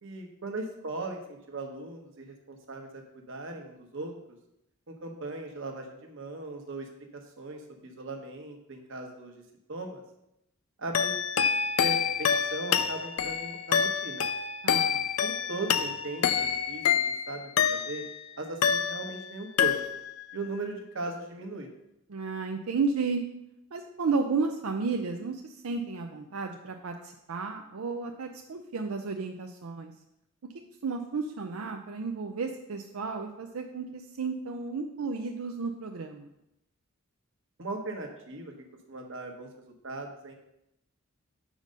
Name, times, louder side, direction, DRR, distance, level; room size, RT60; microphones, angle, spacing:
voice 1, 0.0-4.1 4.9-6.9 7.1-9.3 9.7-10.0 10.8-11.2 11.8-14.3 15.2-18.0 18.4-19.8 20.3-21.7 37.6-38.5 38.9-39.5 39.8-40.3, right 2 dB, 65° right, 3 dB, 1.2 m, -38 dB
sound 1, 10.9-18.2 18.6-19.3 19.6-20.2, left 7 dB, 80° left, 0.5 m, -27 dB
voice 2, 14.6-15.0 22.1-23.2 23.7-29.9 30.8-36.3, right 4 dB, 90° right, 4 dB, 0.5 m, -33 dB
6.5 x 5.0 x 5.2 m, 0.85 s
head